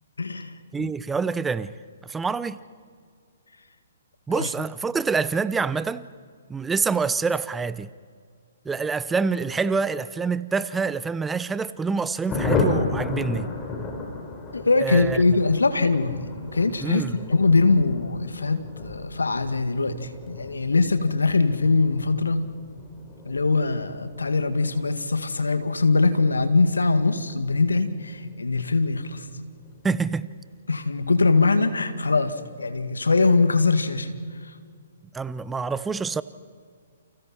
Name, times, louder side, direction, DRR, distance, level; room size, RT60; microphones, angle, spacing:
voice 1, 0.2-0.9 4.3-4.5 14.5-17.0 17.3-22.5 23.3-29.3 30.7-34.1 34.5-34.6, left 3 dB, 85° left, 2.0 m, -22 dB
voice 2, 0.7-1.7 2.0-2.6 4.3-6.1 6.5-7.9 8.6-13.5 14.8-15.2 16.8-17.2 29.8-30.3 35.1-36.2, right 5 dB, 10° right, 0.6 m, -26 dB
Thunder, 12.3-28.4 28.7-28.8 29.1-29.2 29.5-29.9, left 3 dB, 20° left, 4.6 m, -34 dB
29.5 x 29.5 x 4.5 m
figure-of-eight pair, 130°, 0 cm